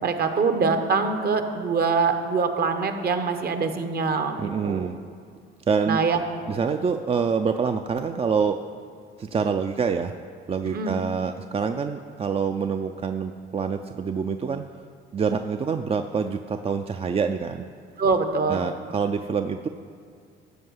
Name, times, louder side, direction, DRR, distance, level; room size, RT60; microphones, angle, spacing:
voice 1, 0.0-4.4 4.6-4.9 5.9-6.2 10.6-11.0 18.0-18.6, right 4 dB, 50° right, 7 dB, 1.1 m, -24 dB
voice 2, 4.4-5.0 5.7-6.0 6.5-8.6 9.2-10.1 10.5-14.6 15.1-17.7 18.5-19.7, right 6 dB, 30° right, 7 dB, 0.4 m, -26 dB
13.0 x 4.7 x 8.0 m, 2.2 s
cardioid pair, 90°, 21 cm